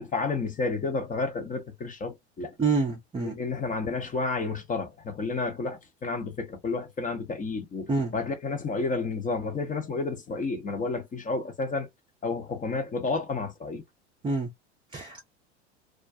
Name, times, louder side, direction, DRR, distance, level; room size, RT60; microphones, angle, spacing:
voice 1, 0.0-2.5 3.2-11.9 12.2-13.8, left 3 dB, 25° left, 0.7 m, -31 dB
voice 2, 2.6-3.4 7.9-8.1 14.2-14.5 14.9-15.3, right 4 dB, 15° right, 0.6 m, -27 dB
2.4 x 2.2 x 2.6 m
hypercardioid pair, 95°, 34 cm